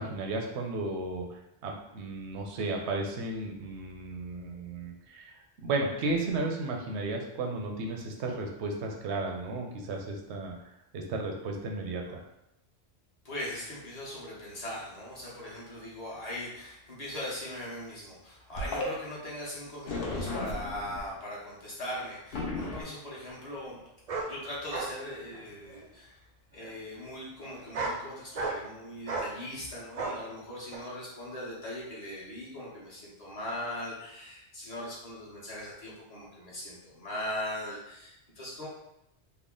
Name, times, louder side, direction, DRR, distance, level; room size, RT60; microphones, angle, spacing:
voice 1, 0.0-5.3 5.6-10.6 10.9-12.2, right 2 dB, 85° right, 2 dB, 0.9 m, -34 dB
voice 2, 13.2-23.8 24.2-26.2 26.5-38.7, left 1 dB, 35° left, -6 dB, 1.1 m, -40 dB
sound 1, 18.5-18.9 19.9-21.0 22.3-22.8, left 2 dB, 60° left, 0.9 m, -34 dB
sound 2, 22.0-22.1 24.1-24.3 24.7-24.9 25.3-25.8 26.6-26.7 27.5-28.0 28.3-28.7 29.1-29.3 30.0-30.2 30.7-30.8, right 3 dB, 45° right, 0.5 m, -34 dB
3.5 x 2.1 x 3.6 m, 0.85 s
omnidirectional pair, 1.1 m